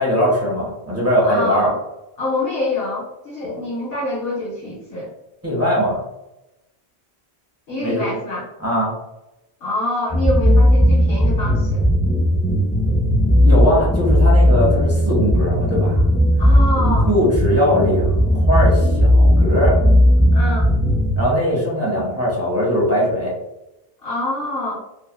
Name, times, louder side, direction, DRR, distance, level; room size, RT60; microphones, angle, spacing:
voice 1, 0.0-1.7 3.4-3.6 5.4-6.0 7.8-8.0 8.6-8.9 13.4-16.0 16.9-19.8 21.2-23.3, equal, 15° right, -5 dB, 0.8 m, -20 dB
voice 2, 1.2-1.8 2.2-5.1 7.7-8.5 9.6-11.9 16.4-17.1 20.3-20.7 24.0-24.8, left 2 dB, 65° left, -6 dB, 0.9 m, -25 dB
sound 1, 10.1-21.2, equal, 15° left, 0.5 m, -16 dB
2.7 x 2.3 x 2.2 m, 0.93 s
omnidirectional pair, 1.1 m